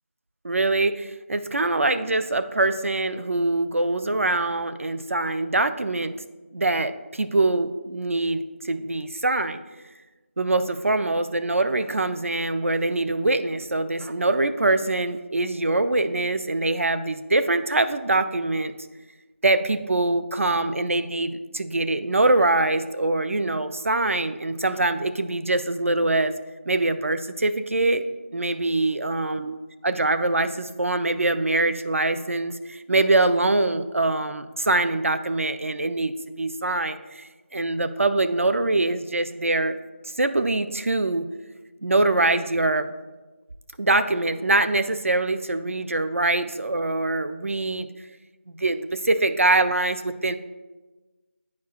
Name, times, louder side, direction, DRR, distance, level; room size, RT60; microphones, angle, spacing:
voice 1, 0.4-6.2 6.5-9.6 10.4-18.7 19.4-26.3 26.7-28.0 28.3-29.6 29.8-39.8 40.2-41.3 41.8-42.9 43.8-47.9 48.5-50.3, right 2 dB, 70° right, 10 dB, 0.4 m, -23 dB
9.5 x 4.6 x 2.3 m, 1.2 s
figure-of-eight pair, 170°, 7 cm